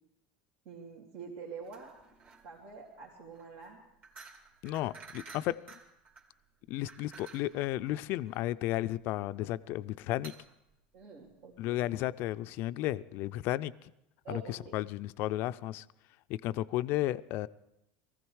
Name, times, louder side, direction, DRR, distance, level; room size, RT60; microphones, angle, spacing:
voice 1, 0.6-1.9 2.4-3.8 10.9-11.8 14.2-14.7, right 5 dB, 70° right, 2.7 m, -46 dB
sound 1, 1.6-11.6, right 4 dB, 40° right, 2.3 m, -54 dB
voice 2, 4.6-5.6 6.7-10.3 11.6-13.9 14.3-15.9 16.3-17.5, left 15 dB, 55° left, 0.5 m, -33 dB
19.0 x 15.0 x 4.7 m
supercardioid pair, 115°, 4 cm